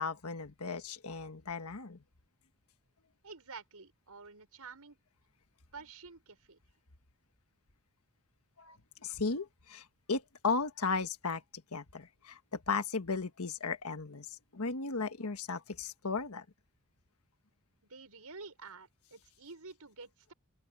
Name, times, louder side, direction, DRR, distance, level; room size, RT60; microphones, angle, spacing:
voice 1, 0.0-2.0 8.6-8.8 9.0-16.4, left 4 dB, 80° left, 1.4 m, -36 dB
voice 2, 3.2-5.0 5.7-6.6 17.8-20.3, right 4 dB, 85° right, 5.3 m, -50 dB
open air
head